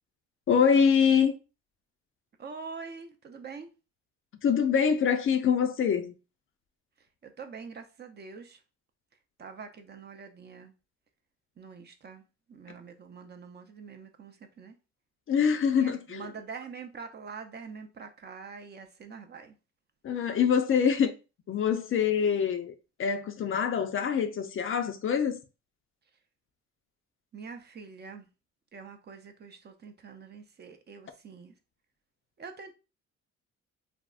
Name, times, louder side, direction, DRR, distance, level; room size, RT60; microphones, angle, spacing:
voice 1, 0.5-1.3 4.4-6.1 15.3-16.2 20.0-21.1 21.5-22.7 23.0-25.4, left 7 dB, 45° left, 0.4 m, -25 dB
voice 2, 2.4-3.7 7.0-8.6 9.4-10.7 11.6-14.8 15.8-19.6 27.3-28.3 28.7-31.5 32.4-32.7, right 5 dB, 35° right, 0.5 m, -45 dB
3.4 x 2.0 x 2.4 m
cardioid pair, 90°, 30 cm